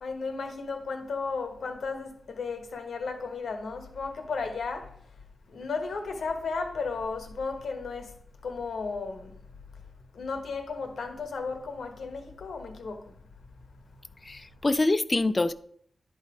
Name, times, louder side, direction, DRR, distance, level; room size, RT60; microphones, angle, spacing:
voice 1, 0.0-5.1 5.5-9.4 10.1-13.2 14.3-14.4, left 4 dB, 90° left, 1.2 m, -34 dB
voice 2, 14.2-15.5, left 2 dB, 30° left, 0.4 m, -25 dB
11.0 x 4.1 x 4.8 m
wide cardioid pair, 95°, 0 cm